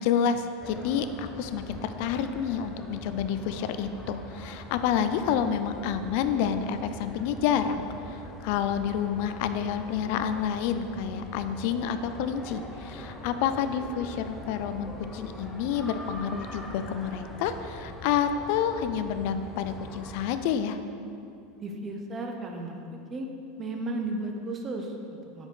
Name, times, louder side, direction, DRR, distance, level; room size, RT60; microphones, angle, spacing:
voice 1, 0.0-20.8, left 8 dB, 60° left, 9 dB, 0.3 m, -29 dB
sound 1, 0.6-20.4, left 1 dB, 15° left, 0.6 m, -43 dB
voice 2, 21.6-23.3 23.6-25.5, right 2 dB, 30° right, 3 dB, 0.7 m, -34 dB
5.6 x 4.6 x 3.7 m, 2.5 s
hypercardioid pair, 85°, 0 cm